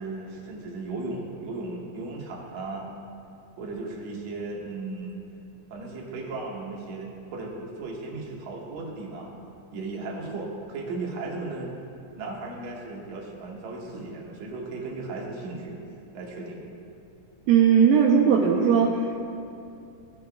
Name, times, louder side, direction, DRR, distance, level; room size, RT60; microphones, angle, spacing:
voice 1, 0.0-2.9 3.6-5.2 5.7-9.3 9.7-11.7 12.2-15.8 16.1-16.6, right 3 dB, 65° right, -2 dB, 2.2 m, -36 dB
voice 2, 17.5-19.2, right 7 dB, 85° right, 0 dB, 2.2 m, -19 dB
14.5 x 5.7 x 2.3 m, 2.6 s
omnidirectional pair, 4.0 m